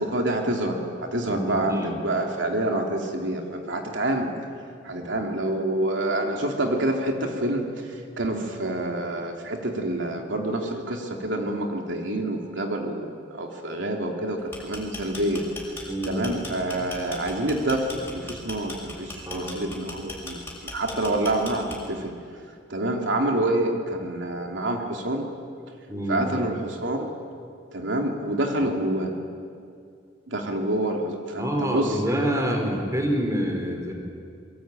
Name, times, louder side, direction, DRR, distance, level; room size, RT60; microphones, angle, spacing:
voice 1, 0.0-4.3 4.8-15.5 16.1-22.1 22.7-25.3 26.1-27.1 27.7-29.1 30.3-32.0 32.4-32.8, right 1 dB, 75° right, 2 dB, 3.0 m, -27 dB
voice 2, 1.2-2.0 4.9-5.2 15.9-16.2 19.3-19.7 25.9-26.3 28.6-28.7 31.4-33.9, equal, 15° right, 3 dB, 4.5 m, -27 dB
sound 1, 14.4-22.0, left 2 dB, 10° left, 6.8 m, -38 dB
26.0 x 23.0 x 9.1 m, 2.4 s
head